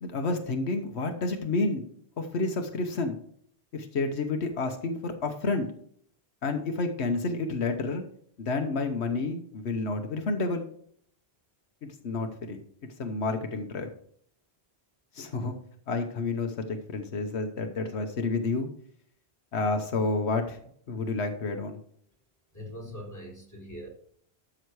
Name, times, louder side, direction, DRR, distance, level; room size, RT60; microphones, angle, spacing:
voice 1, 0.0-1.8 2.2-3.2 3.7-5.7 6.4-8.0 8.4-10.6 11.8-12.6 13.0-13.9 15.1-15.5 15.9-16.6 16.9-18.7 19.5-20.6 20.9-21.8, left 3 dB, 85° left, 6 dB, 1.3 m, -30 dB
voice 2, 22.5-23.9, equal, 15° left, -3 dB, 4.0 m, -42 dB
12.5 x 6.5 x 4.8 m, 0.62 s
omnidirectional pair, 1.1 m